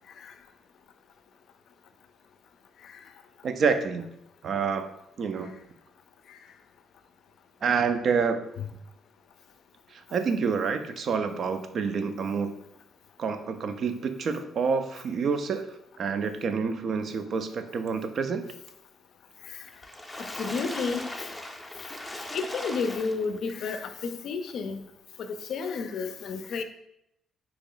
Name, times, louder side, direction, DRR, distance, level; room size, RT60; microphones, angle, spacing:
voice 1, 3.4-4.1 4.4-4.9 5.2-5.5 7.6-8.4 9.9-12.5 13.2-18.4, right 5 dB, 60° right, 9 dB, 0.4 m, -28 dB
Water / Splash splatter, 19.7-23.5 24.1-24.2 24.5-24.6, left 1 dB, 10° left, 0.5 m, -38 dB
voice 2, 20.2-21.3 22.3-24.9 25.2-26.6, left 5 dB, 70° left, 8 dB, 0.4 m, -32 dB
3.0 x 2.9 x 3.8 m, 0.80 s
cardioid pair, 90°, 0 cm